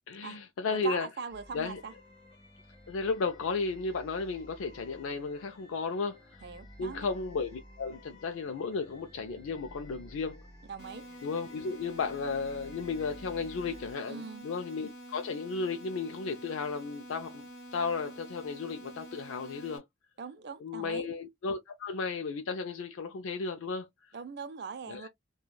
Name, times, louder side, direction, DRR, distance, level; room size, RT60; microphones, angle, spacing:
voice 1, 0.1-1.1 1.5-1.8 2.9-6.4 6.8-10.4 11.2-19.8 20.6-23.9 24.9-25.1, left 4 dB, 85° left, 0.4 m, -34 dB
voice 2, 0.7-1.9 6.4-7.1 10.7-11.0 14.1-14.4 20.2-21.1 24.1-25.1, right 5 dB, 55° right, 0.4 m, -41 dB
sound 1, 1.3-13.9, equal, 25° left, 1.2 m, -53 dB
sound 2, 10.8-19.8, equal, 55° left, 1.4 m, -48 dB
3.2 x 2.2 x 2.2 m
head